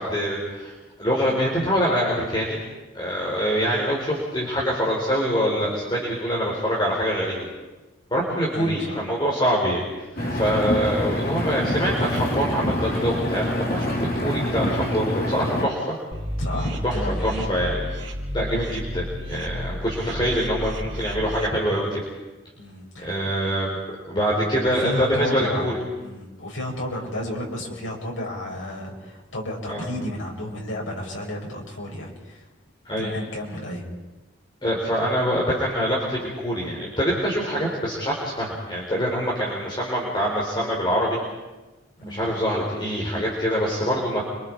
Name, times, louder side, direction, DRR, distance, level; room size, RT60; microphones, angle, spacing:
voice 1, 0.0-2.6 2.9-7.5 8.1-10.0 10.3-15.9 16.8-17.0 17.2-17.9 18.3-22.0 23.0-23.8 24.1-25.8 29.7-29.8 32.8-33.1 34.6-41.2 42.1-44.2, equal, 25° left, -4 dB, 4.6 m, -24 dB
voice 2, 8.5-9.0 16.4-17.5 22.5-23.1 24.3-25.7 26.0-32.5 33.0-33.9 42.0-42.3, left 1 dB, 80° left, -2 dB, 6.5 m, -32 dB
Engine, 10.2-15.7, left 1 dB, 50° left, 3.5 m, -26 dB
sound 1, 16.1-21.5, equal, 80° right, 3.2 m, -31 dB
30.0 x 25.5 x 4.9 m, 1.1 s
head